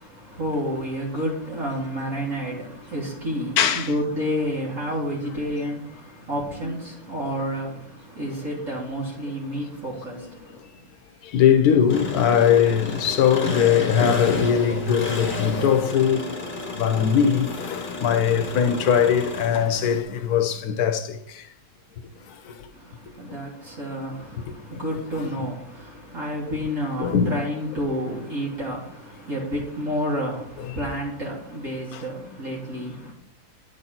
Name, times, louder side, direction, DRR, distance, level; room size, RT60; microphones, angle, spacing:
voice 1, 0.0-10.7 22.7-33.1, equal, 55° right, 2.0 m, -30 dB
voice 2, 3.6-3.9 6.6-6.8 10.1-10.3 11.2-16.3 16.6-21.4 22.4-22.7 27.0-27.4 30.7-30.8 31.9-32.0 33.1-33.2, left 8 dB, 75° left, 1.2 m, -21 dB
Engine, 11.9-20.0, left 2 dB, 35° left, 1.2 m, -32 dB
9.9 x 4.1 x 4.3 m
omnidirectional pair, 1.7 m